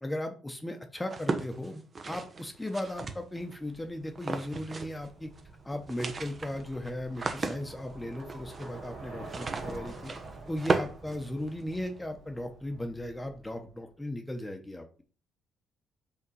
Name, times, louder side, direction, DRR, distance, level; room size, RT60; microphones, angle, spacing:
voice 1, 0.0-5.3 5.6-10.1 10.5-15.0, left 1 dB, 10° left, 4 dB, 1.0 m, -37 dB
sound 1, 1.0-3.6 4.2-5.1 5.3-5.4 5.7-11.9, right 3 dB, 35° right, 1.0 m, -35 dB
Bicycle, 2.8-13.7, right 3 dB, 70° right, 2.7 m, -48 dB
5.4 x 3.8 x 5.5 m, 0.38 s
cardioid pair, 90°, 0 cm